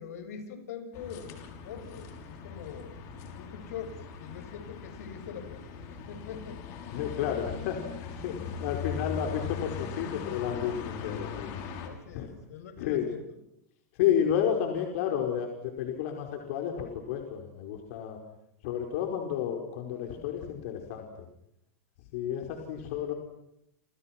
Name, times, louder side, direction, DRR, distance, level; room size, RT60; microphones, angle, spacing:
voice 1, 0.0-3.0 3.3-6.6 11.8-13.4, left 7 dB, 75° left, 8 dB, 7.3 m, -43 dB
sound 1, 0.9-11.9, left 6 dB, 40° left, 6.3 m, -40 dB
voice 2, 6.9-11.5 12.1-12.3 12.8-13.1 14.0-18.2 18.6-21.1 22.1-23.1, left 9 dB, 55° left, 3 dB, 5.1 m, -31 dB
29.5 x 29.5 x 6.1 m, 0.79 s
supercardioid pair, 155°, 8 cm